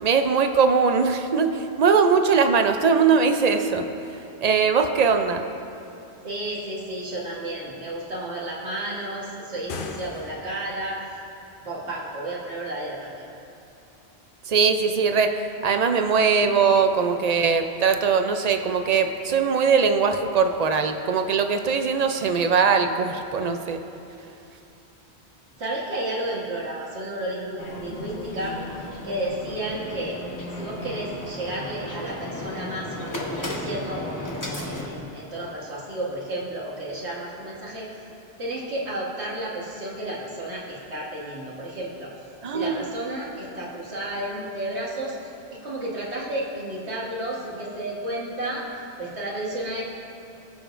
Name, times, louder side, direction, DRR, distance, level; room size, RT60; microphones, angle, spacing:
voice 1, 0.0-3.9 4.4-5.4 14.5-15.4 15.6-23.8 42.4-42.8, right 5 dB, 50° right, 7 dB, 0.5 m, -21 dB
voice 2, 6.2-11.0 11.6-13.2 25.6-28.6 29.0-30.2 30.6-37.9 38.4-48.6 49.0-49.8, right 1 dB, 80° right, -5 dB, 1.8 m, -32 dB
sound 1, 9.5-10.8, left 4 dB, 60° left, 0.8 m, -37 dB
sound 2, 27.6-34.9, left 1 dB, 20° left, 0.9 m, -34 dB
20.0 x 6.9 x 2.5 m, 2.9 s
omnidirectional pair, 1.1 m